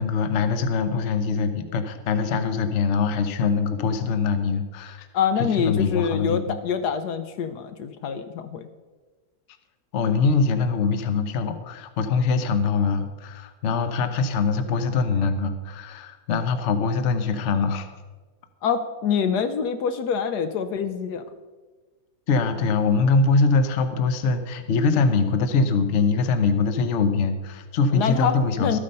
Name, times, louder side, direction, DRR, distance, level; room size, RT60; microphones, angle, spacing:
voice 1, 0.0-5.1 5.4-6.6 9.9-17.9 22.3-28.8, left 4 dB, 50° left, 9 dB, 1.0 m, -23 dB
voice 2, 5.1-8.7 18.6-21.2 27.9-28.8, left 7 dB, 75° left, 9 dB, 1.3 m, -25 dB
13.0 x 8.6 x 5.4 m, 1.3 s
omnidirectional pair, 1.8 m